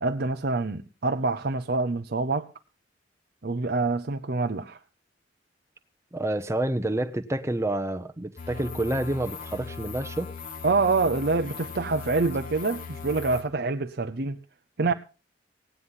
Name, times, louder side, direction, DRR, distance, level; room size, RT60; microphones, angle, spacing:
voice 1, 0.0-2.5 3.4-4.8 10.6-14.4 14.8-14.9, right 3 dB, 55° right, 0.8 m, -26 dB
voice 2, 6.1-10.3, right 1 dB, 15° right, 0.9 m, -28 dB
sound 1, 8.4-13.4, left 5 dB, 50° left, 1.7 m, -39 dB
17.5 x 9.8 x 5.6 m
head